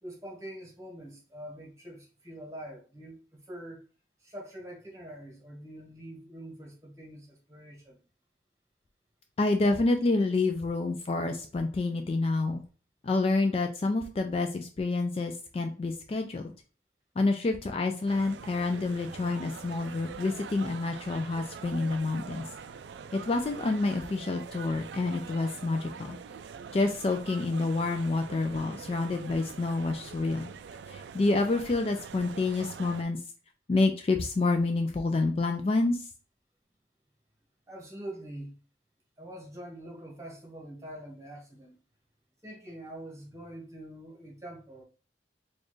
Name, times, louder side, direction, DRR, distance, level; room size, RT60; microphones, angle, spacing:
voice 1, 0.0-3.8 4.2-8.0 37.7-38.6 39.2-41.7 42.4-44.8, right 1 dB, 15° right, -1 dB, 1.2 m, -44 dB
voice 2, 9.4-12.6 13.0-16.5 17.2-22.4 23.1-26.2 26.7-30.5 30.9-33.2 33.7-36.1, left 3 dB, 35° left, 5 dB, 0.3 m, -28 dB
sound 1, 18.1-33.0, right 6 dB, 80° right, 0.3 m, -44 dB
4.2 x 2.4 x 3.1 m, 0.38 s
head